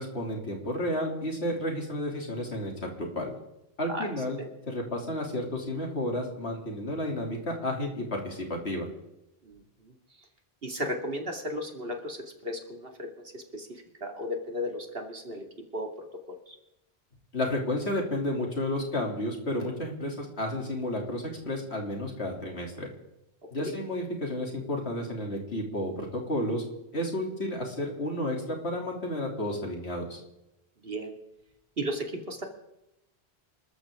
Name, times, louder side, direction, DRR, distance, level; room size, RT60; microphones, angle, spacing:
voice 1, 0.0-3.3 3.8-4.4 4.7-8.9 17.3-22.9 23.5-26.6 26.9-30.2, left 1 dB, 80° left, 0 dB, 3.5 m, -32 dB
voice 2, 9.4-10.3 10.6-13.1 13.3-15.4 15.7-16.6 23.6-23.7 30.8-31.1 31.8-32.4, equal, 60° right, 3 dB, 2.7 m, -35 dB
27.0 x 13.5 x 3.8 m, 0.89 s
omnidirectional pair, 1.1 m